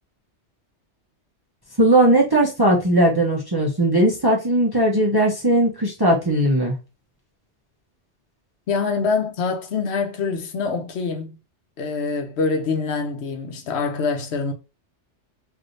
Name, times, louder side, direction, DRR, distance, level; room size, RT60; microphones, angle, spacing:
voice 1, 1.8-6.8, right 1 dB, 25° right, 0.7 m, -18 dB
voice 2, 8.7-11.4 11.8-14.5, left 4 dB, 70° left, 0.9 m, -25 dB
3.2 x 2.7 x 2.6 m
omnidirectional pair, 1.2 m